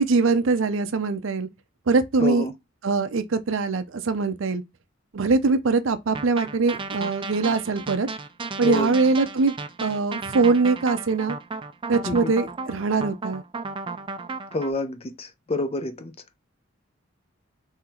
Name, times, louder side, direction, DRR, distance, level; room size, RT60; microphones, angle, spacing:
voice 1, 0.0-1.5 1.9-2.5 2.8-4.6 5.1-8.1 8.6-11.4 11.9-13.4, right 4 dB, 70° right, 0.6 m, -22 dB
voice 2, 2.2-2.5 8.6-8.9 12.1-12.3 14.5-16.1, left 2 dB, 30° left, 0.5 m, -28 dB
sound 1, 6.1-14.7, right 3 dB, 25° right, 0.4 m, -34 dB
3.8 x 2.9 x 4.2 m
head